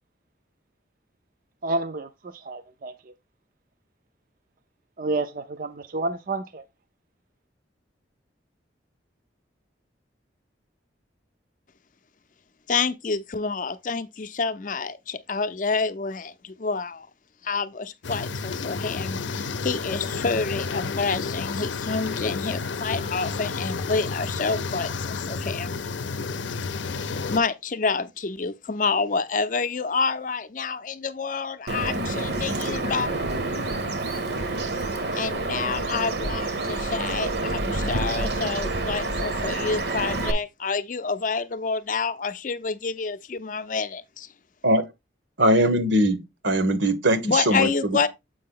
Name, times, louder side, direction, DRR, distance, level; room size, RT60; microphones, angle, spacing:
voice 1, 1.6-3.1 5.0-6.6, right 2 dB, 45° right, 0.4 m, -30 dB
voice 2, 12.7-17.1 17.4-25.8 27.3-33.1 35.1-44.3 47.2-48.1, left 4 dB, 45° left, 0.5 m, -28 dB
sound 1, 18.0-27.4, left 4 dB, 85° left, 0.6 m, -31 dB
Bird vocalization bird call bird song, 31.7-40.3, right 2 dB, 65° right, 0.9 m, -28 dB
voice 3, 45.4-46.2 46.4-48.0, right 1 dB, 80° right, 1.2 m, -21 dB
7.6 x 5.1 x 3.7 m
head